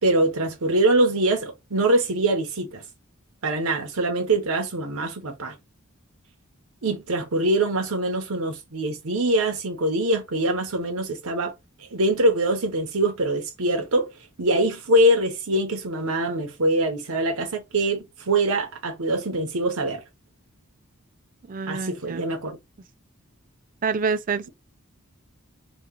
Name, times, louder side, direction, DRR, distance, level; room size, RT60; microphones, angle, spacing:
voice 1, 0.0-2.8 3.4-5.5 6.8-11.5 11.9-14.1 14.4-20.0 21.7-22.6, right 1 dB, 80° right, 0.9 m, -23 dB
voice 2, 21.5-22.3 23.8-24.5, right 5 dB, 40° right, 0.4 m, -27 dB
3.0 x 2.4 x 3.7 m
head